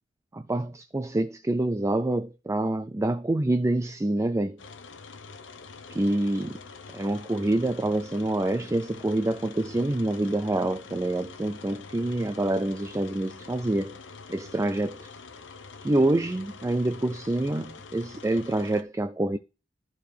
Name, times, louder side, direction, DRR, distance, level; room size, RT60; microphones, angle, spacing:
voice 1, 0.3-4.6 5.9-6.6 6.9-14.0 14.3-15.1 15.8-19.4, right 1 dB, 15° right, 0.4 m, -26 dB
sound 1, 4.6-18.8, left 4 dB, 80° left, 0.9 m, -45 dB
13.5 x 4.7 x 3.4 m
head